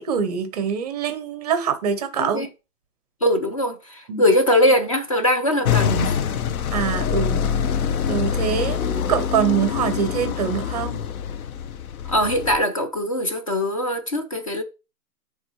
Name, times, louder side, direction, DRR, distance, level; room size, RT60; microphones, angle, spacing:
voice 1, 0.0-2.5 4.1-4.2 6.7-7.5 8.1-11.0, right 8 dB, 25° right, 0.6 m, -24 dB
voice 2, 3.2-6.2 12.1-14.6, left 1 dB, 25° left, 0.4 m, -21 dB
sound 1, 5.7-12.6, left 8 dB, 65° left, 0.8 m, -25 dB
9.8 x 3.4 x 3.0 m
hypercardioid pair, 155°, 47 cm